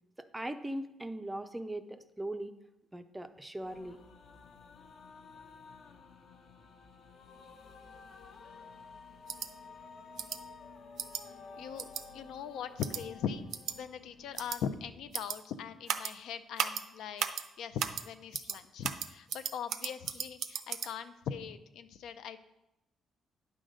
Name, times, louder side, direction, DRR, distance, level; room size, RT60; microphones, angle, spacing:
voice 1, 0.2-2.6 2.9-4.0, right 1 dB, 10° right, 9 dB, 0.4 m, -40 dB
sound 1, 3.6-15.2, left 4 dB, 60° left, 0.9 m, -53 dB
sound 2, 9.3-9.5 10.2-10.4 11.0-11.2 11.8-12.0 12.8-13.0 13.5-13.7 14.4-14.6 15.1-15.4 15.9-16.1 16.6-16.8 17.2-17.4 17.8-18.0 18.3-18.6 18.8-20.9, right 8 dB, 70° right, 0.5 m, -35 dB
voice 2, 11.6-13.4 13.7-22.4, left 8 dB, 80° left, 11 dB, 0.5 m, -40 dB
9.5 x 3.8 x 6.4 m, 0.90 s
cardioid pair, 155°, 0 cm